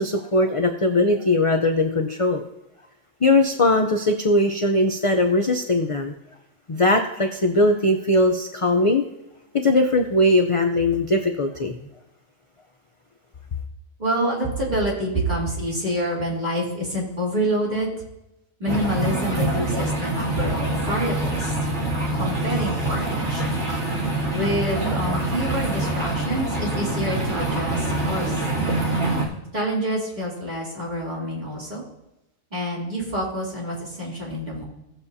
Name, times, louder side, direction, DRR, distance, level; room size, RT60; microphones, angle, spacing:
voice 1, 0.0-2.4 3.2-6.1 6.7-9.0 9.6-11.7, left 2 dB, 45° left, 5 dB, 0.4 m, -20 dB
voice 2, 14.0-17.9 18.6-21.5 22.1-23.6 24.3-28.4 29.5-31.8 32.5-34.6, equal, 30° right, -6 dB, 3.2 m, -27 dB
sound 1, 18.7-29.2, right 2 dB, 55° right, 2.7 m, -25 dB
17.0 x 7.2 x 2.7 m, 0.92 s
omnidirectional pair, 1.4 m